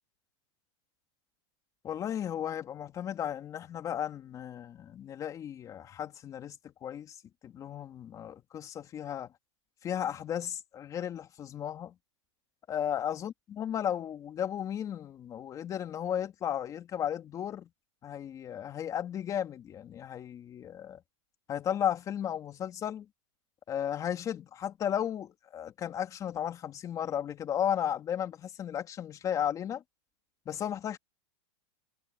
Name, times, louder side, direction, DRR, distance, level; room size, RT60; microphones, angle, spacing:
voice 1, 1.8-7.2 7.4-9.3 9.8-11.9 12.7-17.7 18.0-21.0 21.5-23.1 23.7-29.8 30.5-31.0, left 9 dB, 20° left, 3.4 m, -34 dB
supercardioid pair, 155°, 15 cm